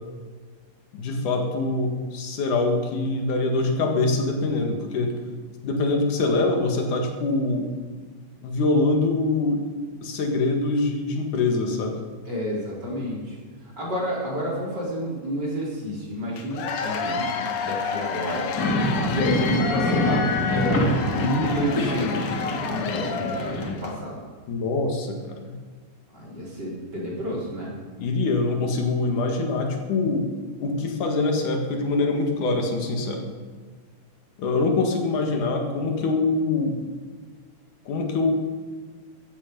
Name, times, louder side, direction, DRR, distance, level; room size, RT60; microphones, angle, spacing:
voice 1, 0.9-5.2 5.6-7.7 8.4-9.7 10.0-12.0 24.5-25.6 28.0-30.3 30.6-33.2 34.4-36.8 37.9-38.4, left 3 dB, 80° left, 3 dB, 3.4 m, -24 dB
voice 2, 12.2-13.4 13.6-18.5 19.0-20.9 21.2-24.2 26.1-27.7, equal, 30° right, -4 dB, 4.8 m, -30 dB
Cheering / Applause / Crowd, 16.4-24.0, left 6 dB, 60° left, 1.7 m, -30 dB
sound 1, 18.6-23.7, left 1 dB, 35° left, 2.1 m, -25 dB
15.0 x 14.5 x 5.4 m, 1.5 s
omnidirectional pair, 3.5 m